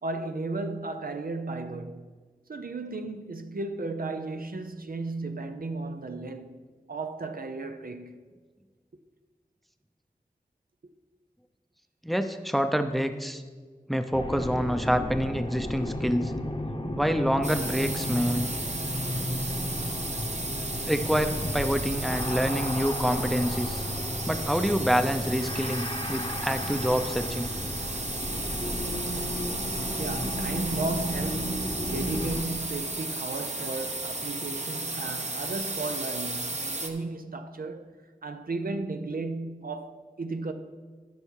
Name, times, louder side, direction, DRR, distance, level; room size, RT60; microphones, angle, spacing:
voice 1, 0.0-2.1 2.5-6.6 6.9-8.3 30.0-37.9 38.2-40.5, right 3 dB, 75° right, 0.7 m, -34 dB
voice 2, 12.0-13.4 13.9-16.3 17.0-18.5 20.9-23.8 24.3-27.5, equal, ahead, 0.7 m, -27 dB
sound 1, 14.1-32.4, left 1 dB, 40° left, 1.1 m, -34 dB
sound 2, 17.4-36.9, right 2 dB, 50° right, 1.0 m, -34 dB
13.0 x 5.6 x 4.7 m
wide cardioid pair, 40°, 15 cm